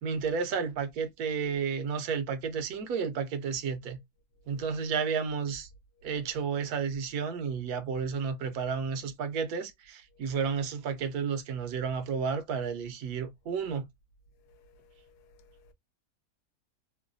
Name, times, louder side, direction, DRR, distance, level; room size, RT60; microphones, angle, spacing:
voice 1, 0.0-4.0 4.5-5.7 6.0-13.9, right 6 dB, 75° right, 1.1 m, -32 dB
voice 2, 14.5-15.7, left 2 dB, 80° left, 1.2 m, -60 dB
3.1 x 2.2 x 2.3 m
omnidirectional pair, 1.7 m